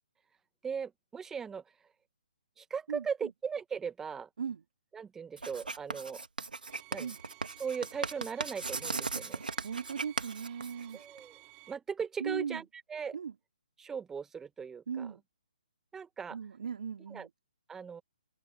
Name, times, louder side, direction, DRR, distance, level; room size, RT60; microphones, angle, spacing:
voice 1, 0.6-1.6 2.6-4.3 4.9-6.2 6.9-7.1 7.6-9.4 10.9-11.4 11.7-13.1 13.8-15.1 15.9-16.4 17.1-17.3 17.7-18.0, right 6 dB, 10° right, 1.3 m, -38 dB
voice 2, 2.9-3.3 4.4-4.6 7.0-7.2 9.6-11.0 12.2-12.6 13.1-13.3 14.9-15.2 16.3-17.3, right 7 dB, 60° right, 3.3 m, -38 dB
Writing, 5.4-11.2, right 4 dB, 85° right, 2.5 m, -38 dB
sound 1, 6.7-11.8, right 25 dB, 25° right, 4.2 m, -56 dB
hypercardioid pair, 145°, 5 cm